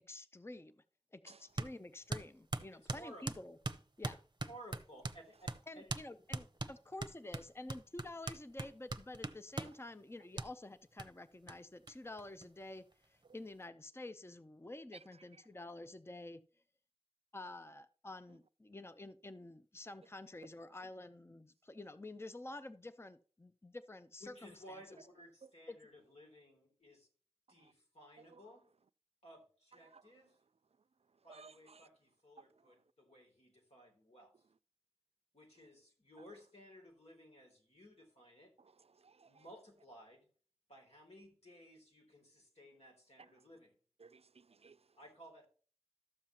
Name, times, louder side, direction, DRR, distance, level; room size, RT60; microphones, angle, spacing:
voice 1, 0.1-0.8 1.1-3.6 4.0-4.2 5.7-16.4 17.3-24.8 25.7-25.8, left 2 dB, 25° left, 0.6 m, -49 dB
sound 1, 1.6-1.7 2.1-5.2 5.5-5.6 5.9-6.1 6.3-9.8 10.4-10.5 11.0-11.1 11.5-11.6 11.9-12.0 12.2-12.9, right 2 dB, 45° right, 0.7 m, -41 dB
voice 2, 2.7-3.3 4.4-5.5 5.7-5.9 24.2-27.1 27.5-28.7 29.2-30.4 31.2-34.3 35.3-38.5 39.2-40.3 40.7-43.7 45.0-45.5, equal, 85° left, 3.3 m, -57 dB
voice 3, 31.3-31.9 32.4-32.7 38.6-39.4 44.0-44.9, right 4 dB, 70° right, 0.4 m, -59 dB
13.0 x 7.2 x 2.9 m
wide cardioid pair, 45°, 11 cm